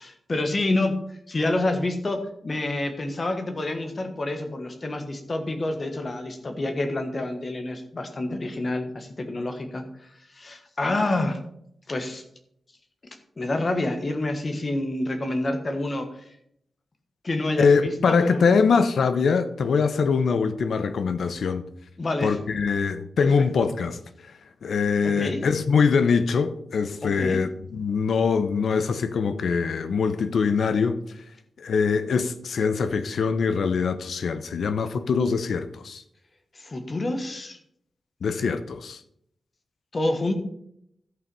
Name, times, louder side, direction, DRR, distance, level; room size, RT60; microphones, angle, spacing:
voice 1, 0.0-11.4 11.9-12.2 13.4-16.2 17.2-18.4 22.0-22.4 23.2-23.5 25.0-25.4 27.0-27.4 36.5-37.6 39.9-40.3, left 2 dB, 30° left, 1.4 m, -28 dB
voice 2, 17.6-21.6 22.2-24.0 24.6-31.0 31.6-36.0 38.2-39.0, left 5 dB, 85° left, 0.8 m, -23 dB
13.0 x 5.8 x 5.4 m
wide cardioid pair, 180°, 0 cm